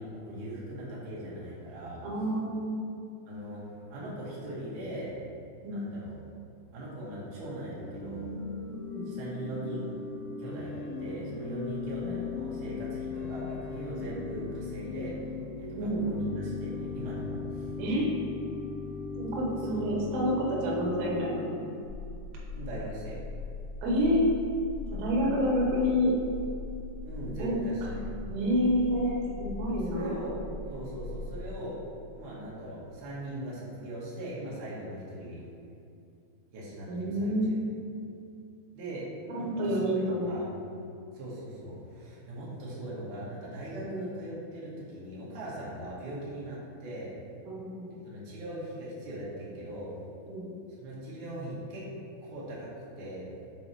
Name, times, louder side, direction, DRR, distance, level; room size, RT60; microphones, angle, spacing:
voice 1, 0.0-2.1 3.3-5.2 5.7-6.1 6.7-8.4 9.1-10.0 10.4-15.3 15.6-17.7 19.6-19.8 22.5-23.2 27.0-28.1 29.9-31.8 32.1-35.4 36.5-37.3 38.7-39.1 39.4-40.5 41.1-47.1 48.0-49.9 50.8-51.8 52.2-52.7 53.0-53.3, right 1 dB, 65° right, -7 dB, 2.1 m, -40 dB
voice 2, 2.0-2.8 5.6-5.8 8.9-9.1 12.0-12.1 15.8-16.0 17.8-18.1 19.2-21.6 23.8-24.2 25.0-26.1 27.4-28.0 28.3-30.2 36.9-37.7 39.3-40.3 43.8-44.0 47.5-48.0 50.3-50.5, equal, 85° right, -3 dB, 3.6 m, -28 dB
Organ / Church bell, 7.6-21.8, left 5 dB, 90° left, 3.1 m, -38 dB
sound 1, 21.8-31.6, left 3 dB, 70° left, 3.5 m, -40 dB
8.6 x 4.0 x 3.1 m, 2.6 s
omnidirectional pair, 5.4 m